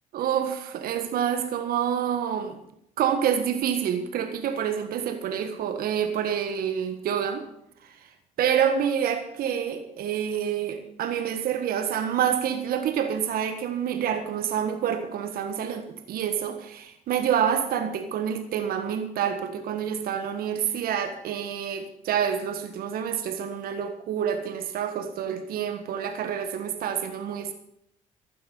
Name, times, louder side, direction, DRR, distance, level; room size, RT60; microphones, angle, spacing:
voice 1, 0.1-2.6 3.0-7.4 7.8-8.1 8.4-27.5, right 8 dB, 65° right, 8 dB, 1.5 m, -27 dB
14.0 x 13.0 x 5.4 m, 0.75 s
hypercardioid pair, 55°, 16 cm